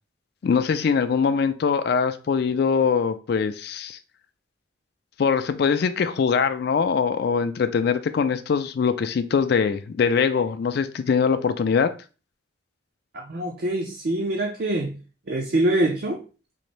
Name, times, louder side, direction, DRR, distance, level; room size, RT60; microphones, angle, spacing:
voice 1, 0.4-4.0 5.2-11.9, left 6 dB, 55° left, 0.3 m, -22 dB
voice 2, 13.1-15.0 15.3-16.2, right 1 dB, 50° right, 0.5 m, -24 dB
3.9 x 2.6 x 3.1 m
head